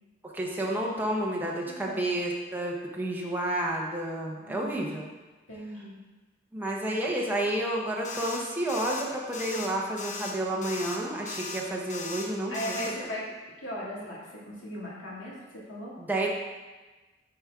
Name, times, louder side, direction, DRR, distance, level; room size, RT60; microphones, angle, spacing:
voice 1, 0.2-5.1 6.5-12.8 16.0-16.3, right 1 dB, 10° right, -2 dB, 1.0 m, -30 dB
voice 2, 1.7-2.2 4.5-5.0 5.5-6.0 12.5-13.2 13.6-14.2 14.4-15.9, equal, 75° left, -6 dB, 2.3 m, -37 dB
sound 1, 8.0-8.4 8.7-9.0 9.3-9.7 10.0-10.3 10.6-11.0 11.3-11.6 11.9-12.3 12.5-12.9, left 4 dB, 40° left, 1.0 m, -37 dB
9.4 x 4.4 x 3.6 m, 1.2 s
head